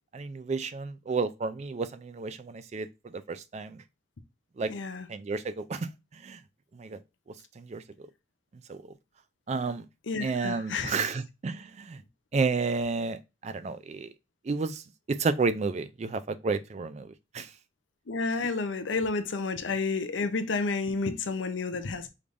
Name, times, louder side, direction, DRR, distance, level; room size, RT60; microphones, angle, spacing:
voice 1, 0.1-3.8 4.6-4.7 5.1-6.4 6.7-7.0 7.6-8.1 8.7-8.8 9.5-9.8 10.2-12.0 12.3-14.1 14.4-14.8 15.1-17.1 17.3-17.5, right 4 dB, 35° right, 0.3 m, -31 dB
voice 2, 4.7-5.1 10.1-11.0 18.1-22.1, left 4 dB, 75° left, 0.6 m, -30 dB
5.1 x 3.3 x 2.5 m
head